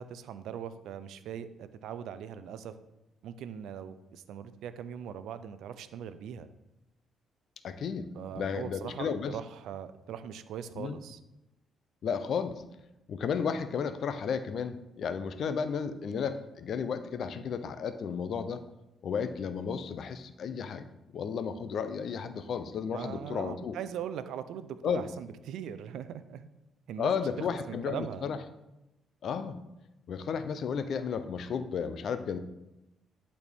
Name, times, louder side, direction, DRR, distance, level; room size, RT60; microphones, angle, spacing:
voice 1, 0.0-2.7 3.2-6.5 8.1-11.2 22.9-26.5 26.9-27.1 27.4-28.3, right 9 dB, 80° right, 12 dB, 0.5 m, -40 dB
voice 2, 7.6-8.1 8.3-9.4 10.8-11.0 12.0-12.6 13.1-18.6 19.0-20.8 21.1-23.8 24.8-25.1 27.0-28.4 29.2-29.6 30.1-32.4, left 6 dB, 60° left, 10 dB, 0.6 m, -33 dB
11.0 x 4.2 x 3.5 m, 0.94 s
cardioid pair, 90°, 0 cm